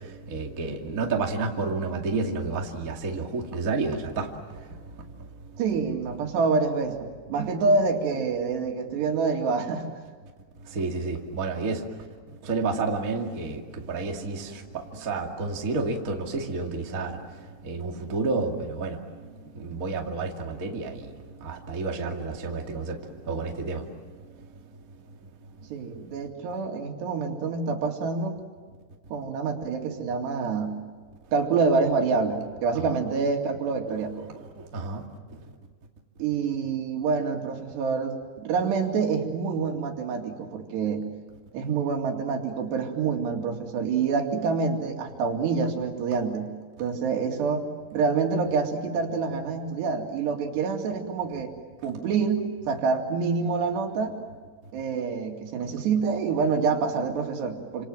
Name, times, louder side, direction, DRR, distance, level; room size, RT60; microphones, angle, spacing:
voice 1, 0.3-4.3 10.7-11.9 12.4-17.2 17.6-19.0 19.6-21.1 21.4-23.0 23.3-23.8 32.9-33.0 34.2-34.3 34.7-35.0, right 3 dB, 25° right, 1 dB, 2.0 m, -30 dB
voice 2, 5.6-9.9 25.7-28.4 29.1-30.8 31.3-34.1 36.2-41.0 41.5-46.5 46.8-51.6 51.8-54.2 54.7-57.9, right 5 dB, 75° right, 3 dB, 4.6 m, -27 dB
28.5 x 27.0 x 7.7 m, 1.5 s
omnidirectional pair, 4.9 m